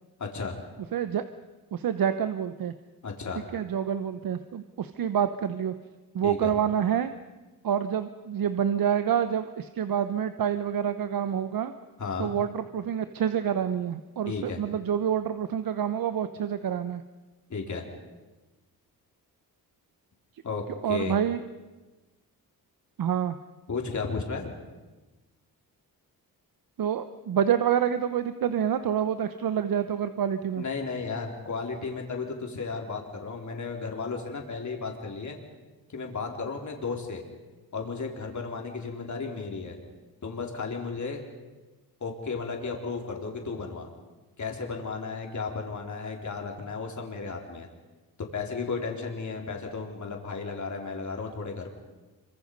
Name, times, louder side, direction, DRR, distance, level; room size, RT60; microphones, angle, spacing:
voice 1, 0.2-0.6 3.0-3.4 6.2-6.5 12.0-12.3 14.3-14.6 17.5-17.9 20.4-21.2 23.7-24.5 30.5-35.4 35.9-37.2 37.7-39.8 40.2-41.2 42.0-43.9 44.4-47.7 48.3-51.7, left 4 dB, 50° left, 1 dB, 4.0 m, -34 dB
voice 2, 0.9-1.2 1.7-2.7 3.5-5.7 6.1-7.1 7.6-11.7 12.2-17.0 20.8-21.4 23.0-23.4 26.8-30.6, right 8 dB, 65° right, 10 dB, 1.0 m, -27 dB
26.0 x 24.5 x 5.5 m, 1.2 s
cardioid pair, 75°, 37 cm